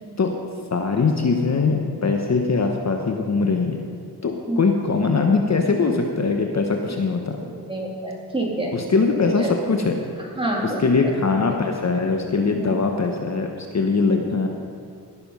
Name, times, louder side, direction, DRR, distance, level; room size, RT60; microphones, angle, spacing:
voice 1, 0.7-3.8 4.2-7.4 8.7-10.0 10.6-14.5, left 4 dB, 40° left, 3 dB, 1.0 m, -21 dB
voice 2, 7.7-8.7 9.4-9.5 10.4-11.1 12.6-12.7, right 1 dB, 15° right, -3 dB, 2.9 m, -27 dB
18.0 x 6.9 x 5.4 m, 2.3 s
cardioid pair, 75°, 40 cm